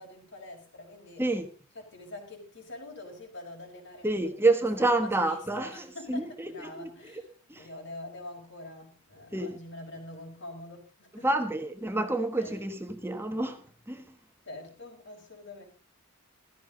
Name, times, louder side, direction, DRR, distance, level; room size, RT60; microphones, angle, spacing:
voice 1, 0.0-1.3 1.7-4.2 4.5-11.3 12.4-12.7 14.5-15.6, left 2 dB, 55° left, 5.6 m, -45 dB
voice 2, 4.0-6.3 6.8-6.9 7.5-7.7 9.3-9.6 11.2-14.0, right 2 dB, 10° right, 1.3 m, -28 dB
16.0 x 14.0 x 3.9 m
head